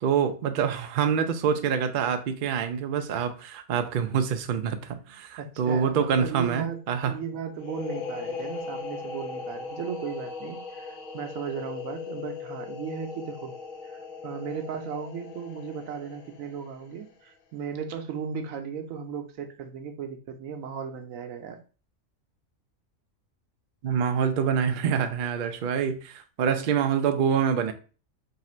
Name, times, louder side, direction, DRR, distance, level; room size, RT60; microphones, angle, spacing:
voice 1, 0.0-7.1 23.8-27.7, right 7 dB, 60° right, 0.5 m, -26 dB
voice 2, 4.9-13.5 13.8-21.6, right 7 dB, 85° right, 1.1 m, -36 dB
sound 1, 7.6-17.1, left 5 dB, 85° left, 1.2 m, -38 dB
3.7 x 2.5 x 4.2 m
omnidirectional pair, 1.4 m